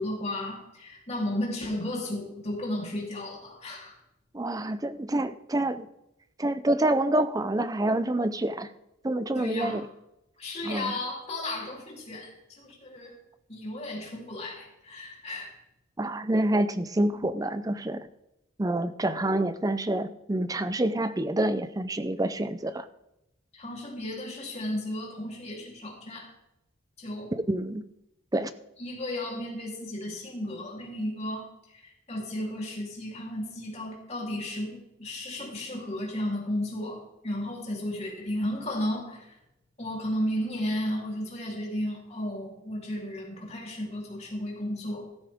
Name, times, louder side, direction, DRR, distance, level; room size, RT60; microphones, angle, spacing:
voice 1, 0.0-4.0 9.4-9.8 10.4-13.1 13.5-15.5 23.5-26.3 27.0-27.3 28.8-39.3 39.8-45.1, left 1 dB, 30° left, -2 dB, 3.3 m, -34 dB
voice 2, 4.3-5.9 6.4-8.7 9.0-9.9 10.6-10.9 16.0-18.1 18.6-22.9 27.3-27.9 28.3-28.5, right 1 dB, 15° right, 13 dB, 0.5 m, -27 dB
14.0 x 13.0 x 3.6 m, 0.87 s
head